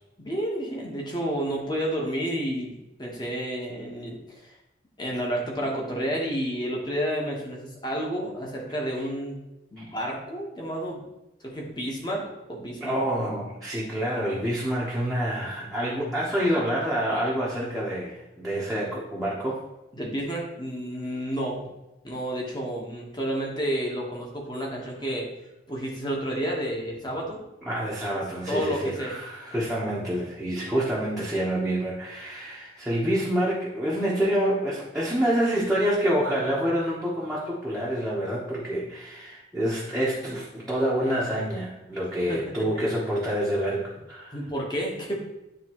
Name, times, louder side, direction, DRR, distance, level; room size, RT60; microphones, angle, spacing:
voice 1, 0.2-4.5 5.0-9.4 9.7-11.0 11.4-13.0 20.0-21.6 22.0-25.3 25.7-27.4 28.1-28.2 28.5-29.2 42.3-42.4 44.3-45.2, equal, 20° left, -2 dB, 1.2 m, -30 dB
voice 2, 12.8-19.6 27.6-44.4, equal, ahead, -8 dB, 1.0 m, -27 dB
9.4 x 3.6 x 3.0 m, 0.95 s
head